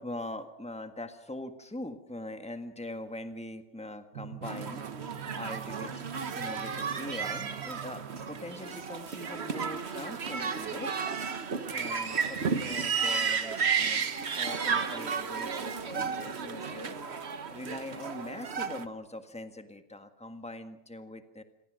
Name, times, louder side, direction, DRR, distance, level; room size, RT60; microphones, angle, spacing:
voice 1, 0.0-6.1 6.3-11.0 11.7-16.9 17.5-21.4, left 1 dB, 5° left, 8 dB, 1.6 m, -42 dB
Drum, 4.1-9.2, right 11 dB, 85° right, 1.6 m, -45 dB
sound 1, 4.4-18.8, right 6 dB, 50° right, 1.4 m, -33 dB
29.0 x 22.0 x 6.4 m, 0.81 s
omnidirectional pair, 1.4 m